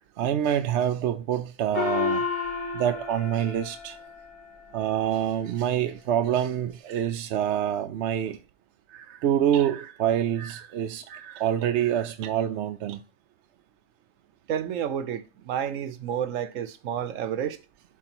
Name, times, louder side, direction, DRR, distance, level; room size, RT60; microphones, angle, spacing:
voice 1, 0.0-2.2 2.7-4.0 4.7-8.4 8.9-13.0, right 10 dB, 70° right, 0.8 m, -26 dB
Gong, 1.7-4.7, left 5 dB, 50° left, 2.0 m, -31 dB
voice 2, 14.5-17.6, right 9 dB, 90° right, 1.1 m, -30 dB
11.0 x 4.6 x 2.9 m
omnidirectional pair, 1.3 m